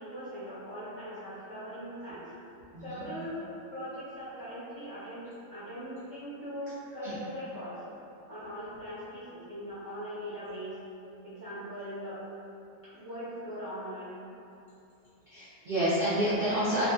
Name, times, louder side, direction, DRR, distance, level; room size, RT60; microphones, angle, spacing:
voice 1, 0.0-2.2 2.8-5.2 5.5-7.8 8.3-10.8 11.2-12.2 12.8-14.2, equal, 25° left, -14 dB, 0.5 m, -40 dB
voice 2, 2.7-3.0 7.0-7.2 15.3-16.9, equal, 65° right, -11 dB, 0.5 m, -29 dB
2.6 x 2.4 x 2.4 m, 2.7 s
omnidirectional pair, 1.5 m